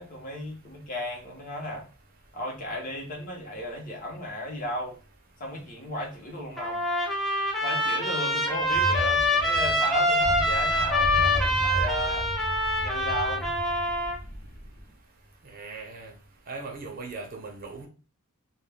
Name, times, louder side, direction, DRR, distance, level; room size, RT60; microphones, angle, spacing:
voice 1, 0.0-1.9 2.3-5.0 5.4-6.8 7.6-12.3 12.8-13.5, equal, 40° left, 0.8 m, -35 dB
Trumpet, 6.6-14.2, left 1 dB, ahead, 0.4 m, -25 dB
sound 1, 8.6-14.9, equal, 75° left, 0.7 m, -34 dB
voice 2, 15.4-16.1 16.5-17.9, right 3 dB, 45° right, 0.6 m, -39 dB
2.2 x 2.2 x 3.3 m
head